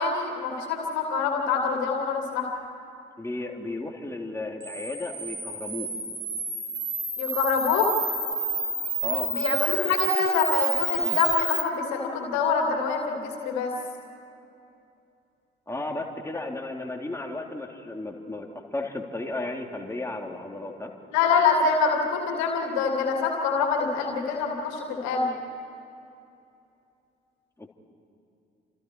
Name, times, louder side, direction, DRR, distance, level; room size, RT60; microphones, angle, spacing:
voice 1, 0.0-2.5 7.2-7.9 9.3-13.7 21.1-25.3, left 5 dB, 70° left, 2 dB, 2.8 m, -25 dB
voice 2, 3.2-5.9 9.0-9.3 15.7-20.9 27.6-27.7, left 2 dB, 10° left, 1 dB, 3.0 m, -34 dB
Camera, 4.6-11.6, right 3 dB, 30° right, 5.8 m, -29 dB
29.5 x 27.5 x 4.7 m, 2.7 s
figure-of-eight pair, 45°, 29 cm